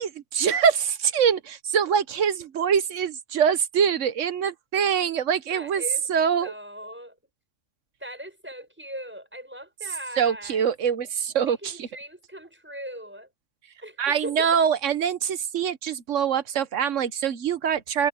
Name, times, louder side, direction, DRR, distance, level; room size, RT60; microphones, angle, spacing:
voice 1, 0.0-5.8 6.1-6.5 10.2-11.9 14.0-18.1, right 7 dB, 80° right, 1.3 m, -24 dB
voice 2, 5.5-6.1 6.4-7.2 8.0-10.6 11.5-13.3 13.8-14.6, equal, 10° right, 6.3 m, -39 dB
omnidirectional pair, 1.3 m